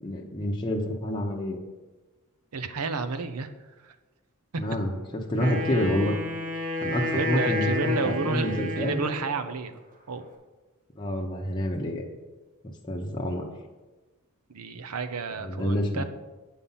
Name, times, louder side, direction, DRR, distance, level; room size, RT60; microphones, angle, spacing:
voice 1, 0.0-1.6 4.6-6.1 6.8-9.0 11.0-12.1 12.9-13.4 15.4-16.0, equal, 20° left, -1 dB, 0.8 m, -28 dB
voice 2, 2.5-3.5 4.5-4.6 7.1-9.8 10.1-10.3 14.5-16.0, right 4 dB, 85° right, 10 dB, 0.7 m, -31 dB
Wind instrument woodwind instrument, 5.4-9.4, left 1 dB, 40° right, 1.2 m, -31 dB
8.4 x 5.7 x 5.6 m, 1.2 s
head